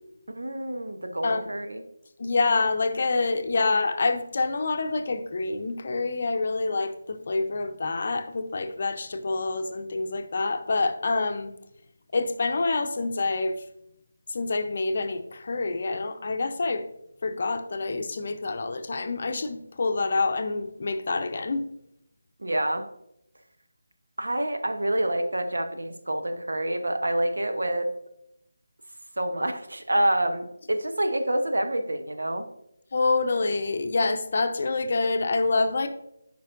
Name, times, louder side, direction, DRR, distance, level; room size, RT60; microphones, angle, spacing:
voice 1, 0.3-1.8 22.4-22.8 24.2-27.9 29.2-32.4, right 1 dB, 85° right, 6 dB, 0.9 m, -27 dB
voice 2, 2.2-11.5 12.1-13.6 14.3-16.8 17.2-21.6 32.9-35.9, left 3 dB, 50° left, 8 dB, 0.6 m, -27 dB
9.0 x 5.2 x 2.6 m, 0.78 s
figure-of-eight pair, 165°, 0 cm